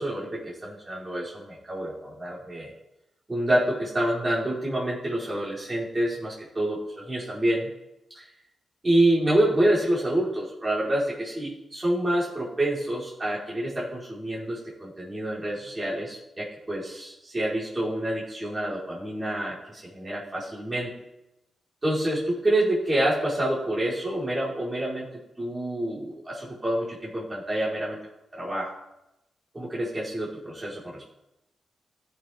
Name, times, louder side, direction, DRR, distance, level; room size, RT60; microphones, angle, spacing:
voice 1, 0.0-2.7 3.3-7.7 8.1-8.3 8.8-20.9 21.8-25.1 25.4-28.0 28.3-28.7 29.5-31.1, right 1 dB, 30° right, -7 dB, 4.7 m, -27 dB
15.0 x 7.0 x 3.7 m, 0.89 s
supercardioid pair, 45°, 0 cm